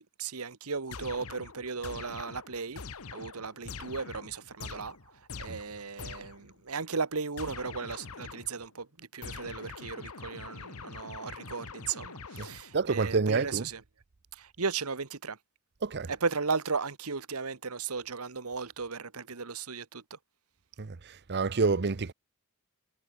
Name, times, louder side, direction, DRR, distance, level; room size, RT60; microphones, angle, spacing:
voice 1, 0.0-2.8 3.1-5.0 5.4-13.8 14.4-15.4 16.1-20.2, right 5 dB, 80° right, 1.5 m, -36 dB
sound 1, 0.9-6.5 7.4-8.7 9.2-12.9, left 4 dB, 75° left, 1.4 m, -44 dB
voice 2, 12.7-13.7 15.8-16.1 20.8-22.1, right 4 dB, 50° right, 0.7 m, -28 dB
head